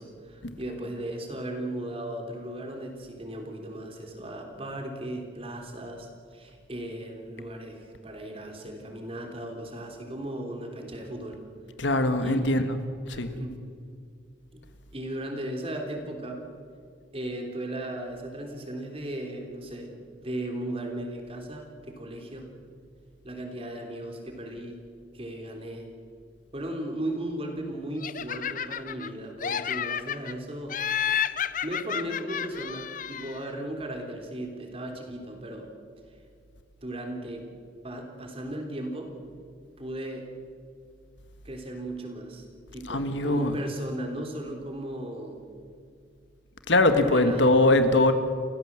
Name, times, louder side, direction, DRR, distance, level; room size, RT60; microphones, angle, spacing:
voice 1, 0.0-11.4 12.2-12.4 13.1-13.6 14.5-14.6 14.9-16.4 17.1-19.9 20.2-22.5 23.2-24.8 25.1-25.9 26.5-31.1 31.6-35.7 36.8-37.5 37.8-39.1 39.8-40.2 41.4-42.5 42.7-45.5 47.0-47.4, right 1 dB, 30° right, 3 dB, 3.5 m, -36 dB
voice 2, 11.8-12.6 13.1-13.4 42.9-43.5 46.7-48.1, left 2 dB, 80° left, 9 dB, 1.7 m, -22 dB
Laughter, 28.0-29.1 29.4-30.3 30.7-33.5, left 9 dB, 45° left, 0.7 m, -31 dB
29.5 x 15.5 x 7.6 m, 2.2 s
head